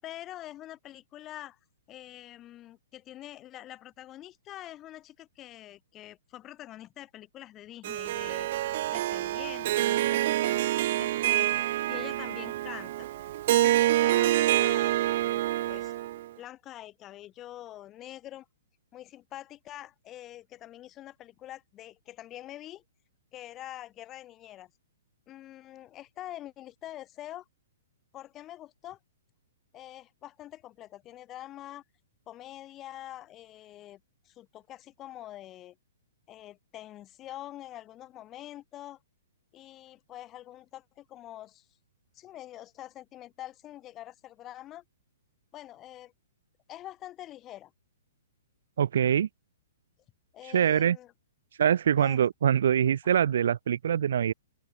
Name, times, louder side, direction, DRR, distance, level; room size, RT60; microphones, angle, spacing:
voice 1, 0.0-1.6 1.9-8.5 8.9-11.5 11.9-13.1 13.5-15.4 15.7-15.9 16.4-18.5 18.9-22.8 23.3-24.7 25.3-27.4 28.1-29.0 29.7-31.8 32.3-35.8 36.3-39.0 39.5-41.7 42.1-44.8 45.5-46.1 46.7-47.7 50.3-51.1 52.0-52.2, left 13 dB, 15° left, 7.5 m, -45 dB
Harp, 7.8-16.3, right 14 dB, 40° right, 0.3 m, -27 dB
voice 2, 48.8-49.3 50.5-51.0 51.6-54.3, right 9 dB, 60° right, 0.7 m, -24 dB
open air
hypercardioid pair, 175°, 0 cm